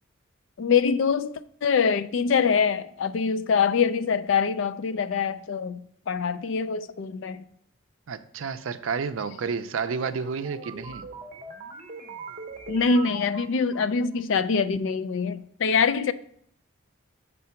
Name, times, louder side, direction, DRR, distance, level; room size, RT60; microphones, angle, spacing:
voice 1, 0.6-5.8 6.1-7.4 12.7-16.1, left 5 dB, 70° left, 0.4 m, -24 dB
voice 2, 8.1-11.1, right 5 dB, 80° right, 0.5 m, -30 dB
sound 1, 10.0-14.2, right 3 dB, 35° right, 0.7 m, -41 dB
7.5 x 3.8 x 5.7 m
head